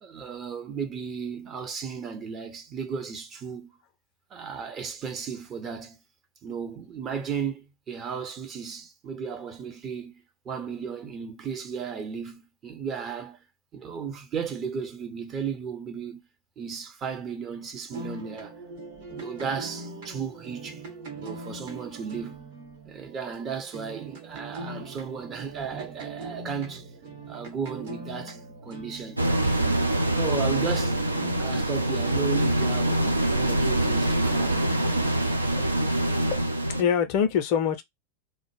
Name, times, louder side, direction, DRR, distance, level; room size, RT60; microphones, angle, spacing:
voice 1, 0.0-3.7 4.3-6.0 6.4-13.4 13.7-16.2 16.6-18.5 19.1-20.8 21.1-22.4 22.9-26.9 27.3-31.0 31.4-33.0 33.3-34.6, right 6 dB, 25° right, 0.6 m, -35 dB
sound 1, 17.9-30.0 30.3-35.1, right 3 dB, 55° right, 0.9 m, -41 dB
sound 2, 29.2-36.8, right 1 dB, 85° right, 0.4 m, -24 dB
voice 2, 35.2-37.8, left 8 dB, 45° left, 0.5 m, -27 dB
2.0 x 2.0 x 3.1 m
figure-of-eight pair, 90°, 0 cm